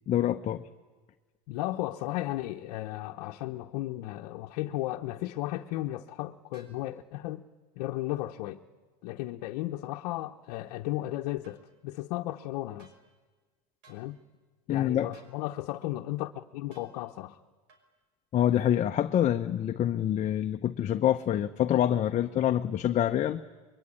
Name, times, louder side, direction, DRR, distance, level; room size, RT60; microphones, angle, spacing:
voice 1, 0.1-0.6 14.7-15.1 18.3-23.4, left 11 dB, 35° left, 7 dB, 0.9 m, -26 dB
voice 2, 1.5-7.5 7.8-8.6 9.0-12.9 13.9-14.2 14.7-17.4, left 16 dB, 70° left, 2 dB, 1.0 m, -35 dB
sound 1, 6.5-6.8 11.4-11.6 12.8-13.0 13.8-14.1 15.1-15.4 16.7-16.9 17.7-17.9, right 3 dB, 65° right, 5.6 m, -59 dB
23.5 x 22.5 x 9.9 m, 1.3 s
hypercardioid pair, 95°, 20 cm